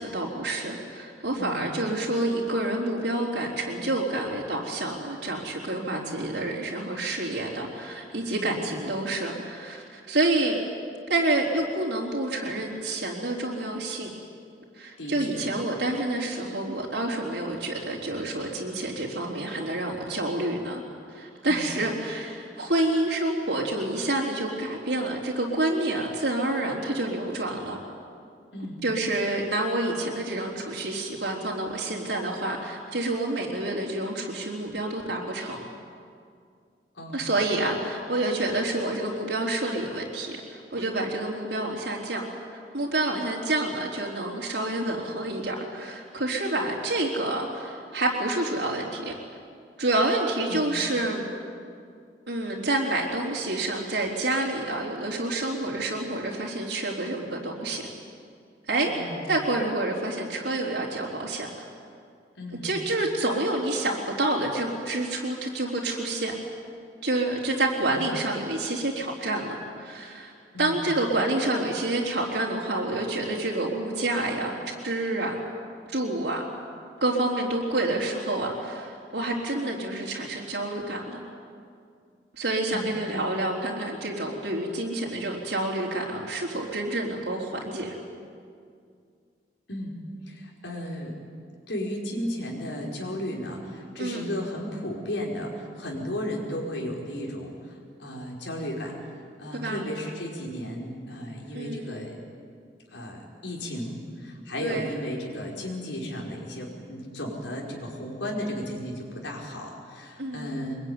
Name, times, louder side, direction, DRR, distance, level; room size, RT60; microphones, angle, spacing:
voice 1, 0.0-10.6 11.1-14.1 14.8-20.8 21.1-27.8 28.8-35.6 37.1-42.2 42.7-49.1 49.8-51.2 52.3-57.9 58.7-58.9 59.3-61.5 62.6-66.4 67.0-70.3 70.6-75.4 75.9-76.4 77.0-81.2 82.3-87.9 94.0-94.2 99.5-99.8 101.5-102.0 104.6-105.0 110.2-110.6, right 2 dB, 75° right, -4 dB, 3.9 m, -28 dB
voice 2, 1.4-1.7 5.9-6.2 8.3-8.6 15.0-15.5 21.5-21.7 28.5-28.8 37.0-37.3 50.5-50.8 58.9-59.3 62.4-62.7 67.8-68.0 70.5-70.8 82.7-83.0 89.7-90.0 90.3-91.1 91.7-97.7 98.0-99.0 99.4-102.2 102.9-110.8, equal, 90° left, -1 dB, 5.1 m, -34 dB
24.0 x 22.0 x 9.7 m, 2.3 s
head